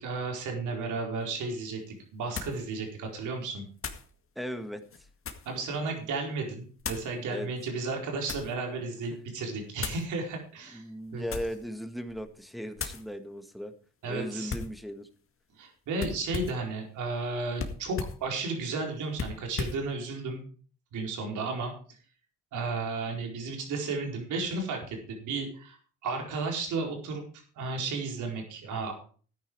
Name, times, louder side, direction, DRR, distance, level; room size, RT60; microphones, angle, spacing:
voice 1, 0.0-3.6 5.4-10.9 11.1-11.2 14.0-14.5 15.6-20.5 20.9-22.0 22.5-25.8 26.0-27.2 27.5-28.9, right 3 dB, 80° right, 2 dB, 4.5 m, -33 dB
sound 1, 1.2-1.3 2.3-2.6 3.8-4.1 4.8-5.6 6.8-7.1 7.9-8.6 9.8-10.1 11.2-11.7 12.1-12.3 12.8-13.0 14.5-14.8 16.0-16.7 17.6-18.2 19.1-19.8, left 5 dB, 45° left, 2.0 m, -37 dB
voice 2, 4.4-4.8 7.3-7.5 10.7-13.7 14.0-15.1, equal, ahead, 7 dB, 1.7 m, -37 dB
13.0 x 9.6 x 4.7 m, 0.42 s
cardioid pair, 90°, 30 cm